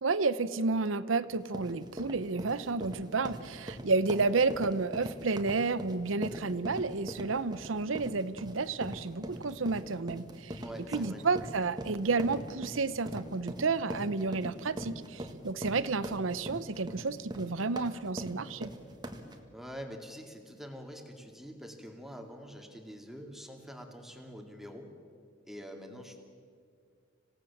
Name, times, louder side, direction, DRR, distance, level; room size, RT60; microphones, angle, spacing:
voice 1, 0.0-10.6 10.9-18.7, right 4 dB, 85° right, 15 dB, 0.8 m, -31 dB
sound 1, 1.3-19.4, equal, 20° right, 1.7 m, -41 dB
voice 2, 10.6-11.2 19.5-24.9 25.4-26.2, equal, ahead, 3 dB, 2.3 m, -45 dB
26.5 x 17.0 x 7.3 m, 2.2 s
head